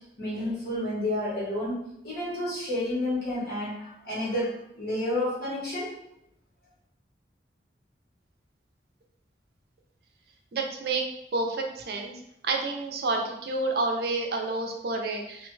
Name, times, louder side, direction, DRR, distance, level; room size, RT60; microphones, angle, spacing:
voice 1, 0.2-1.8 2.0-5.9, left 1 dB, 60° left, -8 dB, 1.2 m, -30 dB
voice 2, 10.5-11.0 11.3-12.1 12.4-15.5, right 3 dB, 60° right, 2 dB, 0.4 m, -29 dB
3.2 x 2.2 x 3.1 m, 0.78 s
head